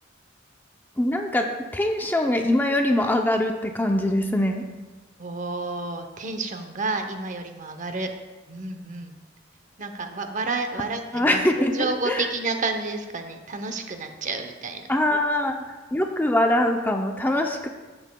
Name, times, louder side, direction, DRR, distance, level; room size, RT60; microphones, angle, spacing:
voice 1, 1.0-1.5 1.7-4.6 11.1-12.3 14.9-15.5 15.9-17.7, left 1 dB, 10° left, 4 dB, 0.5 m, -23 dB
voice 2, 5.2-8.1 8.5-9.1 9.8-14.9, right 3 dB, 40° right, 6 dB, 0.7 m, -30 dB
13.0 x 7.2 x 2.2 m, 1.2 s
head